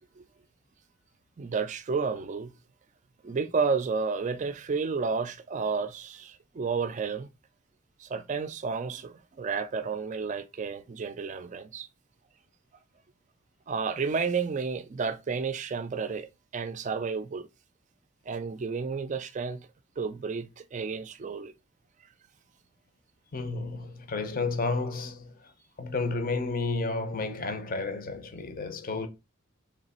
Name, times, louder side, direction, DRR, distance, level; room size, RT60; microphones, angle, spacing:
voice 1, 1.4-2.5 3.2-7.3 8.0-11.9 13.7-17.5 18.3-19.7 20.0-21.5, right 5 dB, 35° right, 0.3 m, -31 dB
voice 2, 23.3-25.5 25.8-29.1, left 3 dB, 40° left, 0.6 m, -31 dB
3.2 x 2.9 x 4.2 m
head